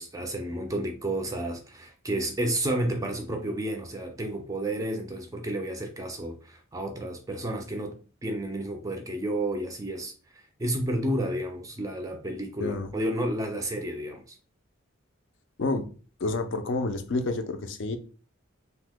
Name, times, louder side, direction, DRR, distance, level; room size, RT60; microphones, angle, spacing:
voice 1, 0.0-14.4, right 1 dB, 15° right, 0.3 m, -31 dB
voice 2, 12.6-12.9 15.6-15.9 16.2-18.0, left 2 dB, 60° left, 0.4 m, -29 dB
2.8 x 2.0 x 3.4 m
head